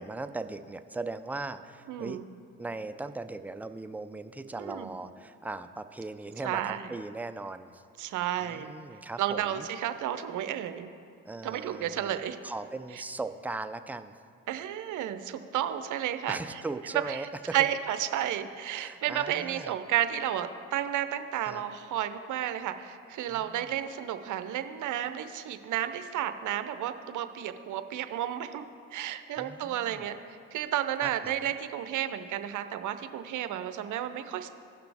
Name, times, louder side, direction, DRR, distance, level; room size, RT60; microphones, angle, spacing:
voice 1, 0.0-2.2 2.6-7.8 8.4-9.7 11.2-12.2 12.4-14.1 16.3-17.5 18.7-19.7 21.4-21.6 23.3-23.7 29.4-30.0 31.0-31.4, right 3 dB, 5° right, 10 dB, 0.3 m, -39 dB
voice 2, 1.9-2.2 4.6-4.9 6.4-6.9 8.0-8.7 9.2-10.9 11.4-12.4 14.5-16.4 17.1-17.3 17.5-34.5, right 11 dB, 55° right, 10 dB, 0.7 m, -32 dB
15.5 x 5.9 x 3.4 m, 2.4 s
hypercardioid pair, 65°, 36 cm